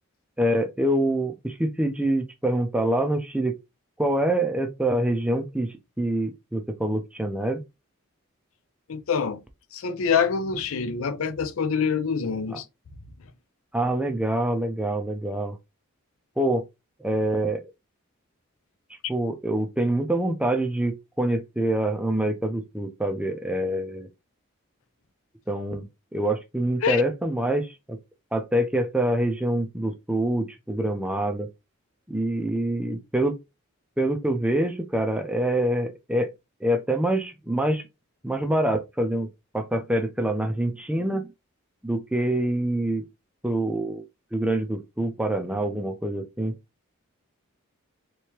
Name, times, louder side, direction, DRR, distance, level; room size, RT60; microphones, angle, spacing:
voice 1, 0.4-3.6 4.0-7.6 12.5-12.6 13.7-15.6 16.4-16.6 17.0-17.7 19.1-24.1 25.5-25.8 26.1-28.0 28.3-31.5 32.1-33.4 34.0-36.3 36.6-37.9 38.2-39.3 39.5-41.3 41.8-43.1 43.4-44.0 44.3-46.6, right 1 dB, 5° right, 0.4 m, -25 dB
voice 2, 8.9-9.4 9.7-12.6 26.8-27.0, left 6 dB, 70° left, 0.5 m, -25 dB
3.4 x 3.1 x 2.9 m
head